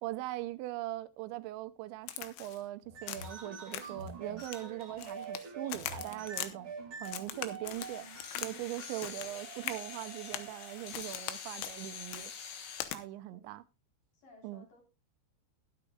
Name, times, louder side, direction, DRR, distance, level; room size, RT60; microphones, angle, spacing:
voice 1, 0.0-6.7 7.0-8.0 8.4-12.3 12.9-13.6 14.4-14.7, right 16 dB, 85° right, 3.0 m, -41 dB
Crack, 2.1-2.6 3.1-3.4 3.7-4.1 4.4-5.4 5.7-6.5 7.0-8.5 8.8-9.3 9.6-9.8 10.3-10.5 10.9-11.4 11.6-11.8 12.1-12.3 12.8-13.0, left 12 dB, 90° left, 3.3 m, -41 dB
sound 1, 2.8-11.1, right 4 dB, 35° right, 2.3 m, -46 dB
sound 2, 7.7-12.9, left 7 dB, 70° left, 4.0 m, -46 dB
voice 2, 14.1-14.8, left 3 dB, 50° left, 5.4 m, -58 dB
21.5 x 8.8 x 2.3 m
omnidirectional pair, 5.1 m